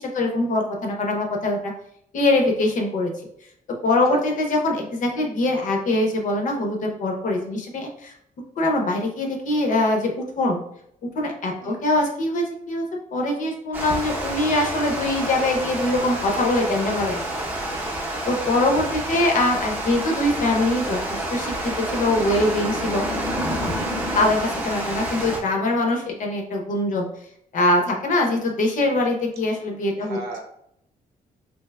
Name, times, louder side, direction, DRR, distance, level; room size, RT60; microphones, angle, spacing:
voice 1, 0.0-1.7 2.1-3.1 3.8-8.1 8.6-10.6 11.0-12.8 13.1-17.2 18.3-23.0 24.1-27.1 27.5-30.4, left 2 dB, 55° left, 1 dB, 0.7 m, -23 dB
Water, 13.7-25.4, right 1 dB, 15° right, 0.7 m, -28 dB
voice 2, 17.7-18.0 30.0-30.4, right 2 dB, 85° right, 1 dB, 0.8 m, -39 dB
3.4 x 2.9 x 2.2 m, 0.71 s
wide cardioid pair, 165°, 16 cm